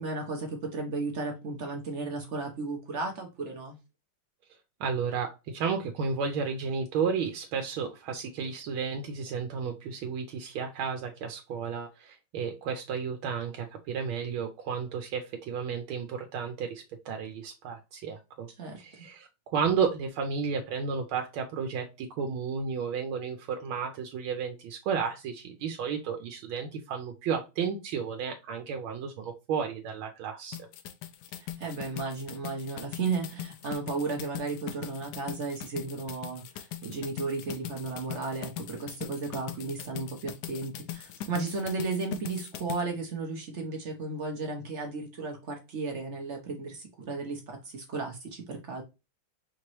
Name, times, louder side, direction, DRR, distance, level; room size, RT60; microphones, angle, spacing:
voice 1, 0.0-3.8 18.6-18.8 31.6-48.8, right 3 dB, 60° right, 0.7 m, -34 dB
voice 2, 4.8-18.5 18.8-30.7, right 6 dB, 80° right, 1.5 m, -32 dB
sound 1, 30.5-42.8, left 10 dB, 75° left, 0.9 m, -41 dB
5.1 x 2.9 x 3.0 m
omnidirectional pair, 2.3 m